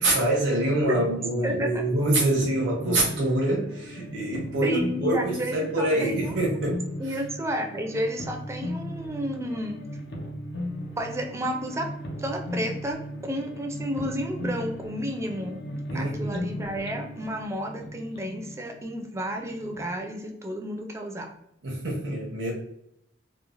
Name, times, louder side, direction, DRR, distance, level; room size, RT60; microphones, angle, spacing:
voice 1, 0.0-7.2 15.9-16.4 21.6-22.5, right 1 dB, 90° right, -2 dB, 0.7 m, -25 dB
sound 1, 0.8-19.9, left 1 dB, 65° left, 0.5 m, -37 dB
voice 2, 1.4-1.8 4.6-6.3 7.0-9.8 11.0-11.9 12.2-15.6 15.9-21.3, equal, 15° right, 3 dB, 0.3 m, -31 dB
3.0 x 2.0 x 2.4 m, 0.76 s
head